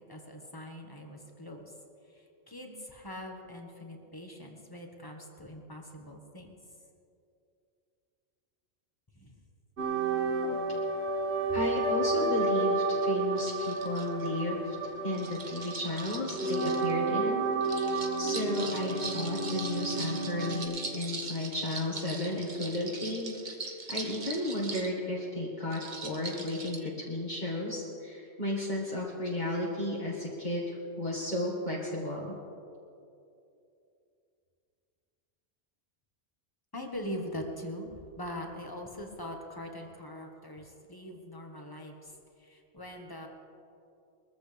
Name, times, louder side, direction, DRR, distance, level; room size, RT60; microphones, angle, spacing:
voice 1, 0.1-1.7 2.1-6.5 9.1-9.4 36.7-37.9 38.2-43.3, equal, 20° left, 2 dB, 1.6 m, -42 dB
sound 1, 9.8-20.6, right 3 dB, 70° right, 1.6 m, -31 dB
voice 2, 11.5-14.8 15.0-23.5 23.9-30.6 31.0-32.3, left 1 dB, 40° left, -5 dB, 1.9 m, -33 dB
sound 2, 13.4-14.3 15.1-16.9 17.6-24.9 25.7-26.8, right 3 dB, 40° right, 1.1 m, -41 dB
22.5 x 14.5 x 3.5 m, 2.6 s
omnidirectional pair, 1.2 m